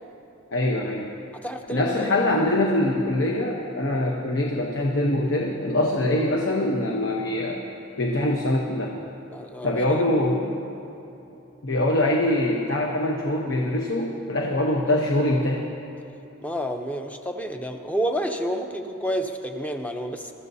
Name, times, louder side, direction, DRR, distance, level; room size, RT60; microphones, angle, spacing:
voice 1, 0.5-1.2 1.7-7.6 8.0-8.9 9.6-10.5 11.6-15.6, left 1 dB, 60° left, 0 dB, 1.0 m, -23 dB
voice 2, 1.4-2.1 9.3-10.0 16.4-20.3, equal, 5° left, 4 dB, 0.7 m, -29 dB
22.5 x 13.5 x 2.8 m, 3.0 s
head